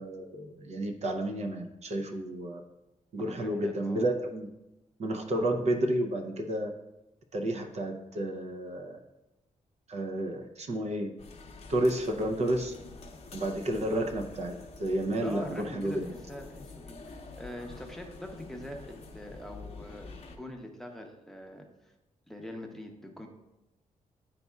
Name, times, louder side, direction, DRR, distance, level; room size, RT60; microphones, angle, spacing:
voice 1, 0.0-2.6 3.1-4.5 5.0-6.7 7.3-9.0 9.9-11.2 11.7-12.7 13.3-14.5 14.8-16.0, right 1 dB, 55° right, 3 dB, 0.6 m, -31 dB
voice 2, 3.2-4.1 15.2-21.9 22.3-23.3, left 1 dB, 5° left, 2 dB, 0.7 m, -44 dB
sound 1, 11.2-20.4, left 3 dB, 55° left, 0.7 m, -47 dB
9.8 x 4.1 x 2.3 m, 0.95 s
wide cardioid pair, 120°, 13 cm